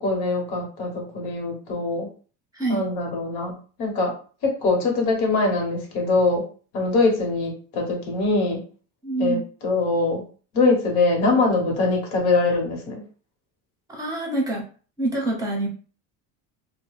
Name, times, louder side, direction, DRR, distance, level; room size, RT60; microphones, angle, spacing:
voice 1, 0.0-2.1 2.7-4.1 4.4-6.4 6.7-8.6 9.2-10.2 10.5-13.0, left 3 dB, 80° left, 0 dB, 1.3 m, -23 dB
voice 2, 2.5-2.9 9.0-9.5 13.9-14.6 15.0-15.7, right 2 dB, 10° right, 0 dB, 0.7 m, -26 dB
2.3 x 2.2 x 3.1 m, 0.39 s
cardioid pair, 155°, 37 cm